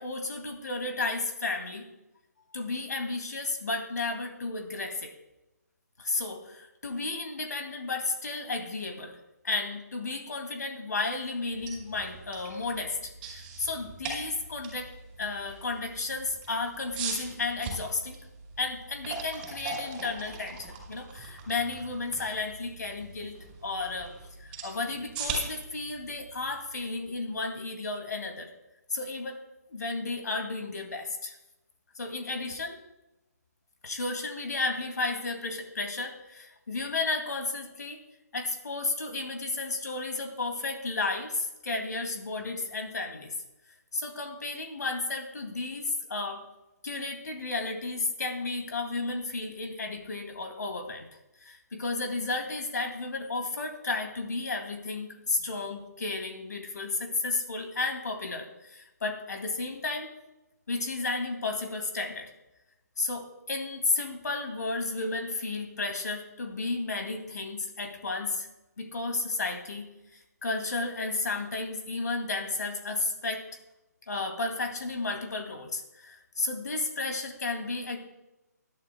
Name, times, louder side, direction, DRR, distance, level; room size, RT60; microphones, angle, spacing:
voice 1, 0.0-1.8 2.5-5.1 6.0-9.2 9.4-14.9 15.2-18.2 18.6-23.4 23.6-24.1 24.6-28.5 28.9-29.4 29.7-31.3 31.9-32.8 33.8-38.0 38.3-43.3 43.9-46.4 46.8-51.1 51.4-60.1 60.7-62.3 63.0-68.5 68.8-69.9 70.1-73.4 74.1-78.0, left 3 dB, 75° left, 4 dB, 2.6 m, -33 dB
sound 1, 11.4-27.4, right 4 dB, 20° right, 4.8 m, -41 dB
20.0 x 11.5 x 2.3 m, 0.99 s
hypercardioid pair, 155°, 9 cm